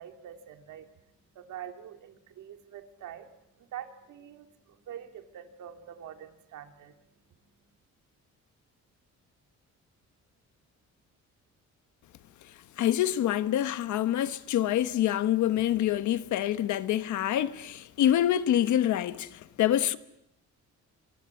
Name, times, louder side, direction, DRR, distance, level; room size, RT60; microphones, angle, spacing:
voice 1, 0.0-7.7, right 10 dB, 80° right, 2.6 m, -46 dB
voice 2, 12.8-20.0, left 12 dB, 80° left, 1.3 m, -26 dB
26.0 x 23.5 x 8.5 m
cardioid pair, 145°, 29 cm